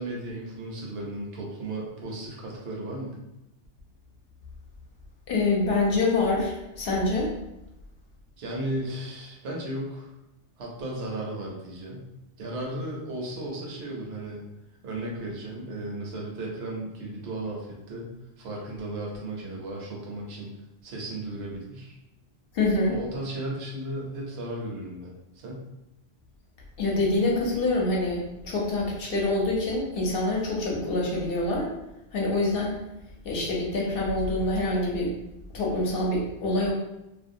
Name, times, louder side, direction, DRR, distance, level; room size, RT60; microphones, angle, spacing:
voice 1, 0.0-3.2 8.4-10.1 10.6-12.1 12.4-14.4 14.8-18.1 18.4-20.5 20.8-22.0 22.8-25.7, right 1 dB, 65° right, -2 dB, 0.9 m, -35 dB
voice 2, 5.3-7.3 22.5-23.0 26.8-31.7 32.1-32.8 33.2-35.1 35.5-36.7, left 2 dB, 60° left, -2 dB, 0.8 m, -26 dB
2.5 x 2.1 x 2.6 m, 0.91 s
omnidirectional pair, 1.2 m